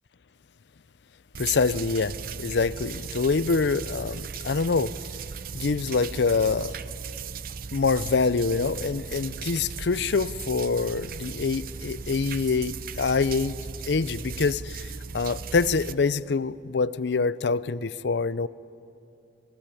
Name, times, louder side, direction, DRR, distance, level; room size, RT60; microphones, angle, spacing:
sound 1, 1.3-15.9, right 5 dB, 50° right, 0.6 m, -37 dB
voice 1, 1.4-5.0 5.5-6.8 7.7-13.6 13.9-14.9 15.1-18.5, left 4 dB, 70° left, 0.5 m, -25 dB
24.5 x 16.5 x 9.9 m
head